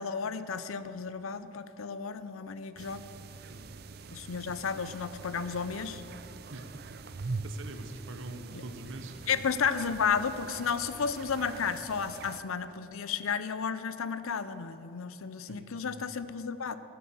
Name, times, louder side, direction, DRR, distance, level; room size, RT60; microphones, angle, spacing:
voice 1, 0.0-3.0 4.1-6.0 8.5-8.6 9.3-16.8, left 6 dB, 90° left, 13 dB, 0.6 m, -33 dB
sound 1, 2.8-12.4, right 3 dB, 50° right, 0.5 m, -43 dB
voice 2, 6.5-7.0 7.4-9.1 15.5-16.0, right 2 dB, 70° right, 7 dB, 1.0 m, -45 dB
13.0 x 8.6 x 7.1 m, 2.9 s
head